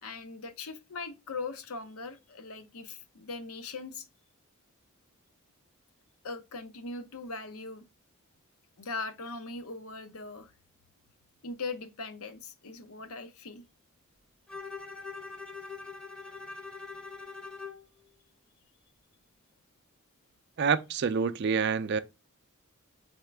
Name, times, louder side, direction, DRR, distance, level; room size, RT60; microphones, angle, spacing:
voice 1, 0.0-4.1 6.2-7.8 8.8-10.5 11.4-13.7, left 3 dB, 80° left, 0.7 m, -40 dB
Bowed string instrument, 14.5-17.9, left 4 dB, 5° left, 0.6 m, -43 dB
voice 2, 20.6-22.0, right 5 dB, 50° right, 0.3 m, -27 dB
4.0 x 3.6 x 3.3 m
head